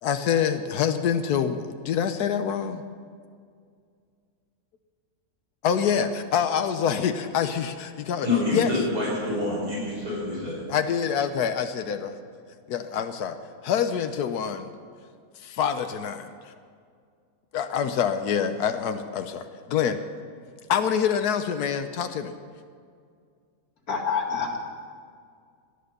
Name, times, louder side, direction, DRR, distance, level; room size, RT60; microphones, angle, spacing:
voice 1, 0.0-2.8 5.6-8.3 8.5-8.7 10.7-12.1 12.7-13.4 13.6-14.7 15.4-16.5 17.5-20.0 20.7-22.3, left 8 dB, 90° left, 8 dB, 1.3 m, -26 dB
voice 2, 8.2-10.6, left 2 dB, 85° right, -4 dB, 5.8 m, -26 dB
voice 3, 23.9-24.6, left 5 dB, 70° left, 1 dB, 2.6 m, -27 dB
18.0 x 11.5 x 6.6 m, 2.2 s
omnidirectional pair, 1.6 m